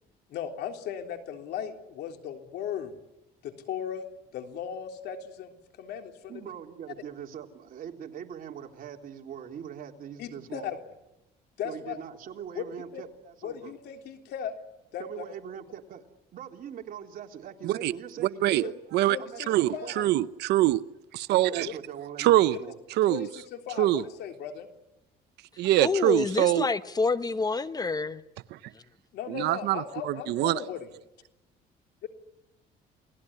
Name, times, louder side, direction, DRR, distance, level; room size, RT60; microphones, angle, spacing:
voice 1, 0.3-2.9 3.4-4.0 4.3-5.5 5.8-6.4 10.2-10.8 11.6-12.0 12.6-12.7 12.9-13.0 13.4-14.6 14.9-15.2 18.6-18.7 19.1-20.1 21.7-21.8 23.1-24.7 29.1-30.9 32.0-32.1, left 8 dB, 75° left, 3.5 m, -37 dB
voice 2, 6.3-10.7 11.6-13.7 15.0-16.0 16.3-18.7 19.2-20.2 21.5-22.8, right 9 dB, 55° right, 3.6 m, -41 dB
voice 3, 19.5-20.8 21.1-21.7 22.2-22.6 23.0-23.3 23.8-24.0 25.6-26.7 28.5-28.6 29.3-30.6, right 15 dB, 80° right, 0.9 m, -24 dB
voice 4, 25.8-28.2, left 4 dB, 20° left, 1.1 m, -27 dB
29.0 x 19.0 x 9.9 m
cardioid pair, 110°, 17 cm